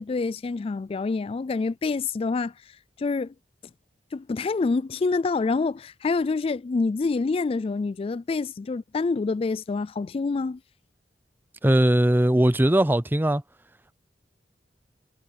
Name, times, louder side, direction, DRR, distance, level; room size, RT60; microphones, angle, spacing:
voice 1, 0.0-2.5 3.0-3.3 4.1-10.6, left 4 dB, 30° left, 0.3 m, -27 dB
voice 2, 11.6-13.4, right 1 dB, 10° right, 0.6 m, -20 dB
head